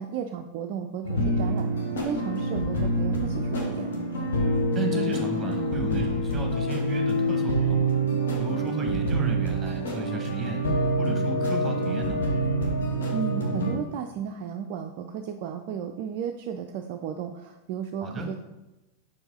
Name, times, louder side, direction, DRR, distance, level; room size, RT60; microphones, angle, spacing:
voice 1, 0.0-3.9 13.1-18.4, right 8 dB, 45° right, 5 dB, 0.3 m, -34 dB
sound 1, 1.0-13.7, right 1 dB, 65° left, 1.2 m, -26 dB
voice 2, 4.7-7.9 8.4-10.6 11.0-12.2 18.0-18.3, right 2 dB, 20° right, 3 dB, 1.1 m, -33 dB
5.4 x 4.6 x 3.8 m, 1.0 s
figure-of-eight pair, 90°, 0 cm